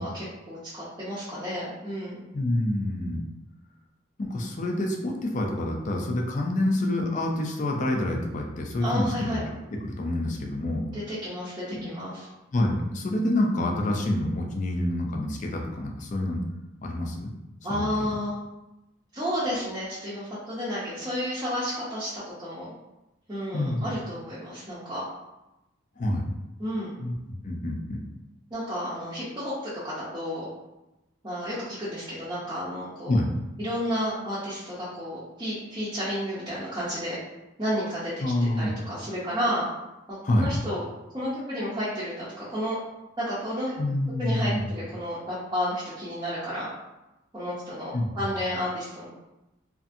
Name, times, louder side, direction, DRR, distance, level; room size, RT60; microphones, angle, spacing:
voice 1, 0.0-2.2 8.8-9.4 10.9-12.3 17.6-18.4 19.1-22.7 23.3-25.0 26.6-26.9 28.5-30.5 31.2-33.2 33.6-37.2 37.6-38.1 38.4-39.7 40.1-40.8 41.1-42.8 43.2-43.7 44.2-46.7 47.3-49.2, equal, 20° right, -11 dB, 0.6 m, -31 dB
voice 2, 2.3-3.2 4.2-9.4 9.8-10.8 11.7-11.9 12.5-16.4 16.8-17.3 17.7-18.1 23.5-23.9 26.0-26.2 27.0-28.0 33.1-33.3 38.2-38.7 40.2-40.5 43.8-44.7 47.9-48.1, left 1 dB, 40° left, 1 dB, 0.4 m, -27 dB
2.5 x 2.5 x 2.5 m, 0.98 s
head